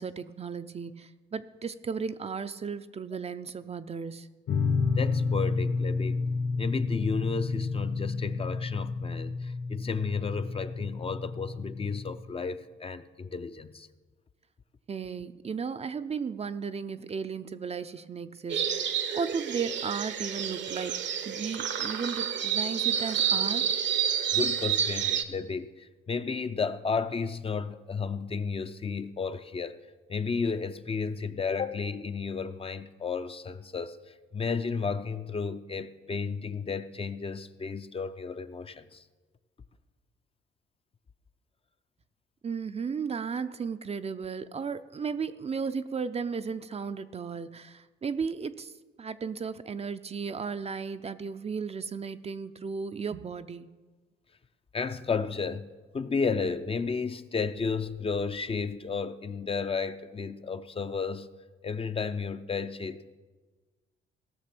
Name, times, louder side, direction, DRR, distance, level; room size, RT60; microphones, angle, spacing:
voice 1, 0.0-4.3 14.9-23.7 42.4-48.7 49.0-53.7, right 5 dB, 30° right, 11 dB, 0.5 m, -35 dB
sound 1, 4.5-12.1, left 4 dB, 75° left, 2.3 m, -30 dB
voice 2, 5.0-6.2 6.6-13.9 24.3-29.8 30.1-39.0 54.7-61.3 61.6-63.2, left 5 dB, 30° left, 10 dB, 0.5 m, -33 dB
sound 2, 18.5-25.2, right 8 dB, 65° right, 0.9 m, -29 dB
17.0 x 6.4 x 6.0 m, 1.3 s
cardioid pair, 90°, 20 cm